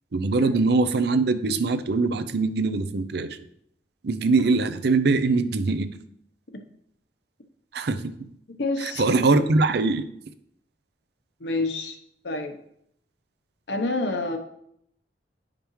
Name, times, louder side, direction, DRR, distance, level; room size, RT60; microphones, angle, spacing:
voice 1, 0.1-3.4 4.0-5.9 7.7-8.1 8.8-10.1, right 3 dB, 65° right, 11 dB, 0.6 m, -22 dB
voice 2, 8.6-9.0 11.4-12.0 12.2-12.6 13.7-14.4, left 2 dB, 70° left, 6 dB, 1.0 m, -28 dB
10.0 x 5.1 x 3.2 m, 0.73 s
head